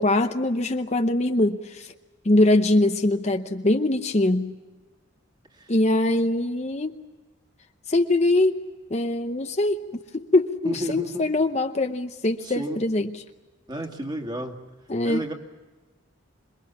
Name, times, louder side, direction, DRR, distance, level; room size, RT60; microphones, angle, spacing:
voice 1, 0.0-1.9 2.2-4.5 5.7-7.0 7.9-8.6 8.9-9.8 10.1-13.2 14.9-15.2, left 2 dB, 35° left, 7 dB, 0.8 m, -22 dB
voice 2, 10.6-11.3 12.4-12.8 13.7-14.6 15.0-15.3, equal, 25° right, 3 dB, 2.3 m, -31 dB
27.0 x 22.0 x 7.2 m, 1.3 s
head